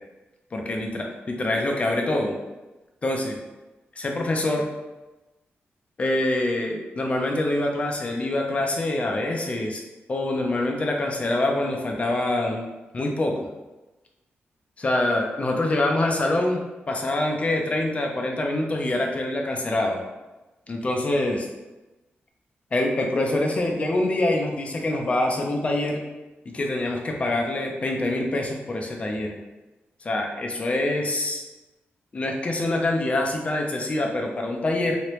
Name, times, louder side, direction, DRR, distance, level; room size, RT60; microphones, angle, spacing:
voice 1, 0.5-2.3 3.0-3.4 4.0-4.7 6.0-9.8 10.1-12.6 12.9-13.5 14.8-16.6 16.9-20.0 20.7-21.5 22.7-26.0 26.5-29.4 30.0-31.4 32.1-35.0, left 1 dB, 30° left, 1 dB, 0.5 m, -25 dB
3.1 x 2.9 x 3.0 m, 1.1 s
wide cardioid pair, 140°, 4 cm